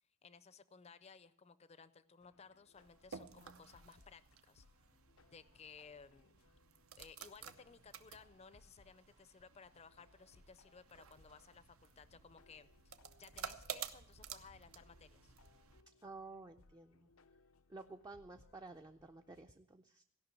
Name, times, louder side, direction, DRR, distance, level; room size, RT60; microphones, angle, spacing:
voice 1, 0.2-4.7 5.3-6.4 7.0-12.9 13.2-15.3, left 5 dB, 30° left, 15 dB, 0.5 m, -59 dB
sound 1, 2.2-19.4, left 3 dB, 85° left, 0.6 m, -69 dB
sound 2, 2.7-15.8, right 7 dB, 80° right, 0.7 m, -53 dB
voice 2, 16.0-17.1 17.7-20.0, right 3 dB, 20° right, 5 dB, 0.4 m, -53 dB
16.0 x 5.8 x 8.2 m, 0.73 s
head